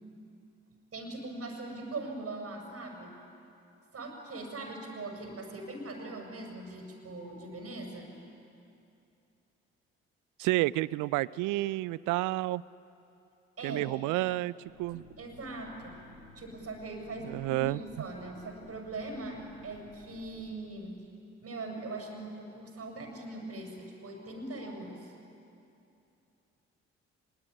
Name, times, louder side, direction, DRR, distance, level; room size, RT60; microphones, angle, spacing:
voice 1, 0.9-3.1 3.9-8.1 13.6-13.8 15.2-16.0 16.3-21.0 21.4-25.1, right 2 dB, 45° right, 3 dB, 6.6 m, -41 dB
voice 2, 10.4-12.6 13.6-14.5 14.8-15.0 17.2-17.8, right 19 dB, 65° right, 22 dB, 0.5 m, -30 dB
sound 1, 14.6-20.5, left 2 dB, 85° left, 3.8 m, -56 dB
24.0 x 21.5 x 9.9 m, 2.7 s
hypercardioid pair, 45°, 33 cm